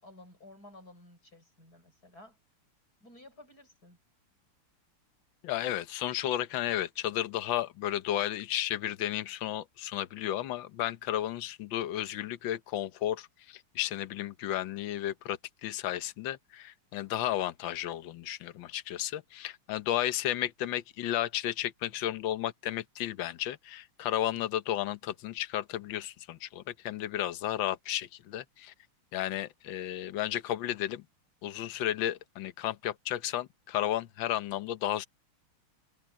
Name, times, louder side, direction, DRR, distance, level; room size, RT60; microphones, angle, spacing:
voice 1, 0.0-2.4 3.0-4.0, left 1 dB, 45° left, 7.3 m, -53 dB
voice 2, 5.4-28.7 29.1-31.0 31.4-35.1, left 12 dB, 65° left, 1.6 m, -33 dB
omnidirectional pair, 2.4 m